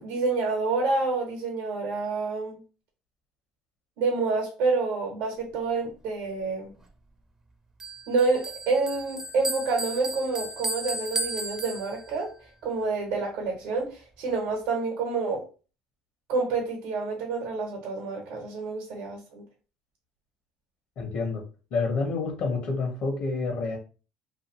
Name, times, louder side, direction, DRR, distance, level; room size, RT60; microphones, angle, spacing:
voice 1, 0.0-2.6 4.0-6.7 8.1-12.3 12.6-15.4 16.3-19.4, right 3 dB, 75° right, 0.9 m, -28 dB
Bell, 7.8-12.3, right 1 dB, 20° right, 0.4 m, -34 dB
voice 2, 21.0-21.4 21.7-23.8, left 4 dB, 60° left, 0.7 m, -28 dB
2.5 x 2.4 x 2.9 m
cardioid pair, 125°, 3 cm